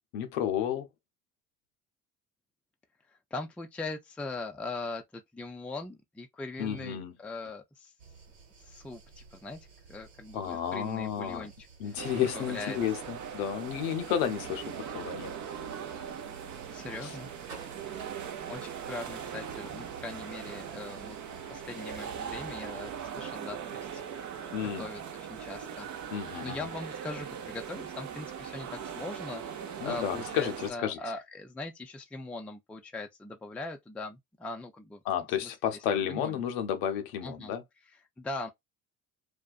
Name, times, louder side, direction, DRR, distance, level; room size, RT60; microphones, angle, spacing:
voice 1, 0.1-0.9 6.6-7.1 10.3-11.5 11.8-15.3 17.0-17.1 24.5-24.9 26.1-26.6 29.8-31.0 35.1-37.6, left 9 dB, 80° left, 0.7 m, -32 dB
voice 2, 3.1-7.9 8.6-9.6 9.9-12.8 16.7-17.3 18.5-21.2 21.5-24.3 24.8-25.9 26.4-35.0 35.4-35.5 36.0-36.4 37.2-37.5 38.2-38.5, left 3 dB, 5° left, 0.4 m, -41 dB
sound 1, 8.0-23.4, right 5 dB, 80° right, 1.2 m, -53 dB
sound 2, 12.0-30.7, right 8 dB, 45° right, 0.7 m, -40 dB
2.5 x 2.2 x 2.4 m
hypercardioid pair, 65°, 40 cm